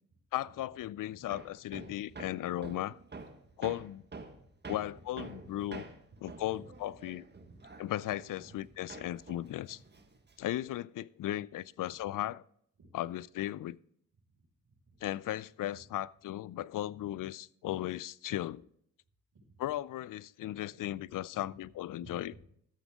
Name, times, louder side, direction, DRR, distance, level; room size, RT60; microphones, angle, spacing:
voice 1, 0.3-3.0 3.6-4.0 4.7-5.8 6.2-7.2 7.8-9.8 10.4-12.4 12.9-13.8 15.0-18.7 19.6-22.3, left 14 dB, 65° left, 0.5 m, -36 dB
Hammer, 1.3-8.6 8.9-10.7, right 3 dB, 30° right, 1.7 m, -48 dB
voice 2, 1.7-2.3 3.6-3.7 4.3-5.9 6.1-6.2 6.5-7.0 7.3-7.7 8.4-9.0 9.7-9.9 10.2-10.4 11.8-12.0 12.8-13.1 14.3-15.0 15.7-15.8 17.0-17.1 19.3-19.7 21.0-21.1 21.3-22.4, right 2 dB, 60° right, 5.2 m, -57 dB
13.0 x 8.3 x 3.6 m
cardioid pair, 65°, 35 cm